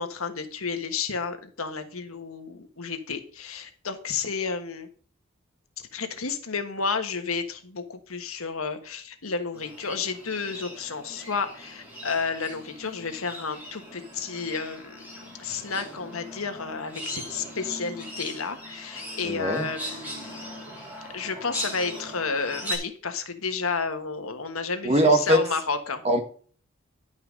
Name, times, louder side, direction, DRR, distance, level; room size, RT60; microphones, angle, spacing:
voice 1, 0.0-4.9 5.9-15.1 15.4-20.4 21.1-26.0, left 5 dB, 90° left, 8 dB, 1.4 m, -31 dB
sound 1, 9.5-22.8, equal, 10° right, 4.0 m, -40 dB
voice 2, 19.2-19.7 24.8-25.4 26.0-26.2, right 1 dB, 30° right, 6 dB, 1.5 m, -21 dB
11.0 x 5.6 x 5.2 m, 0.43 s
head